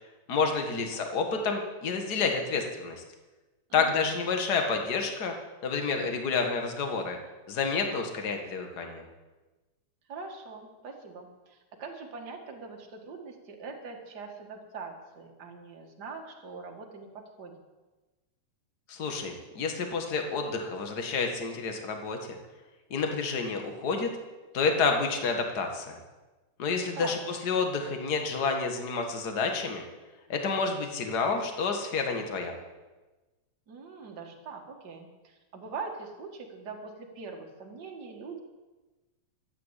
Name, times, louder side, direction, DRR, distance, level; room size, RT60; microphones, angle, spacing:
voice 1, 0.3-3.0 3.7-5.3 5.6-7.2 7.5-9.0 18.9-22.2 22.9-24.1 24.5-26.0 26.6-29.8 30.3-32.5, left 4 dB, 40° left, 4 dB, 1.9 m, -29 dB
voice 2, 3.7-4.0 10.1-17.5 27.0-27.2 33.7-38.4, right 4 dB, 40° right, 2 dB, 2.2 m, -42 dB
13.5 x 9.8 x 8.3 m, 1.2 s
omnidirectional pair, 3.3 m